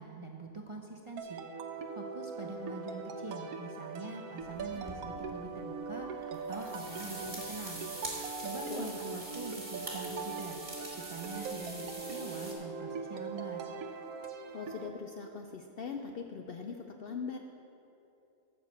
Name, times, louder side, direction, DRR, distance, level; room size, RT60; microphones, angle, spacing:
voice 1, 0.0-1.4 1.9-7.9 8.4-10.6 10.9-13.6, right 3 dB, 40° right, 1 dB, 0.4 m, -44 dB
sound 1, 1.2-14.9, right 5 dB, 85° right, 1.2 m, -41 dB
sound 2, 4.4-5.2 6.2-12.5, right 1 dB, 25° right, 2.0 m, -44 dB
voice 2, 14.5-17.4, left 5 dB, 70° left, 4 dB, 0.5 m, -41 dB
8.8 x 6.5 x 7.2 m, 2.8 s
omnidirectional pair, 1.5 m